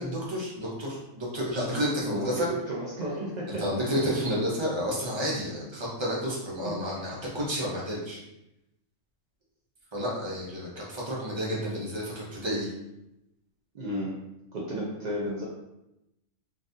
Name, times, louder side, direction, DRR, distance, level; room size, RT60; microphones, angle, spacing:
voice 1, 0.0-2.5 3.6-8.2 9.9-12.7, equal, 25° right, -5 dB, 0.7 m, -30 dB
voice 2, 2.1-3.4 13.7-14.1 14.5-15.4, right 1 dB, 65° right, -5 dB, 0.4 m, -32 dB
4.0 x 2.5 x 2.6 m, 0.89 s
omnidirectional pair, 1.5 m